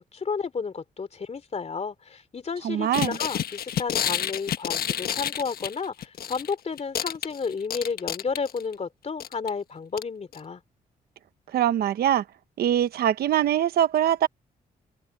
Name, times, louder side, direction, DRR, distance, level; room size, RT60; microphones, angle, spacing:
voice 1, 0.0-10.6, left 5 dB, 45° left, 3.0 m, -32 dB
voice 2, 2.6-3.2 11.5-12.2 12.6-14.3, right 11 dB, 85° right, 1.1 m, -23 dB
sound 1, 2.9-6.5 6.8-8.7 9.2-9.5 10.0-10.1 10.3-10.4, left 10 dB, 75° left, 1.3 m, -29 dB
open air
cardioid pair, 75°, 16 cm